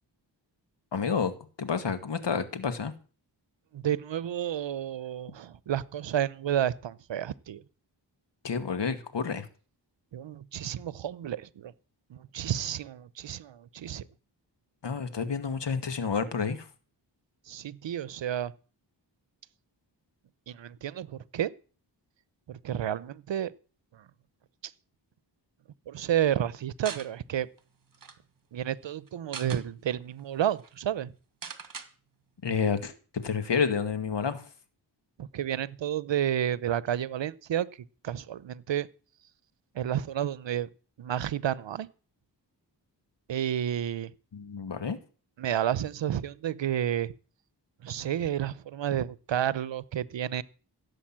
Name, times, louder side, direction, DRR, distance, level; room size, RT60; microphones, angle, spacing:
voice 1, 0.9-2.9 8.4-9.5 14.8-16.7 32.4-32.9 33.2-34.4 44.3-45.0, left 6 dB, 70° left, 1.9 m, -29 dB
voice 2, 3.7-7.6 10.1-11.7 12.1-14.1 17.5-18.5 20.5-21.5 22.5-23.5 23.9-24.0 24.6-24.7 25.9-27.5 28.5-31.1 35.2-37.7 38.0-38.9 39.7-40.7 41.0-41.9 43.3-44.1 45.4-47.1 47.8-50.4, right 10 dB, 85° right, 0.8 m, -31 dB
sound 1, 26.8-27.1 27.6-27.7 27.9-28.2 29.1-29.6 30.2-30.3 30.5-30.7 31.4-31.9, right 5 dB, 50° right, 1.7 m, -40 dB
16.0 x 8.1 x 7.5 m
wide cardioid pair, 100°, 43 cm